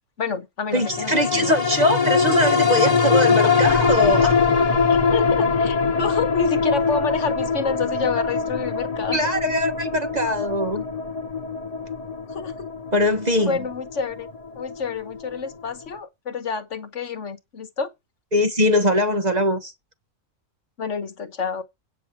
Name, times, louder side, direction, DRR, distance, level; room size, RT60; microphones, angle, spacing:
voice 1, 0.2-1.6 3.4-3.5 4.9-9.2 12.3-12.7 13.5-14.3 14.5-17.9 20.8-21.6, left 5 dB, 60° left, 1.5 m, -28 dB
voice 2, 0.7-4.3 9.1-10.8 12.9-13.6 18.3-19.7, left 1 dB, 30° right, 1.2 m, -21 dB
sound 1, 0.8-15.5 15.9-16.0, left 5 dB, 30° left, 1.0 m, -22 dB
9.1 x 6.1 x 7.2 m
omnidirectional pair, 1.5 m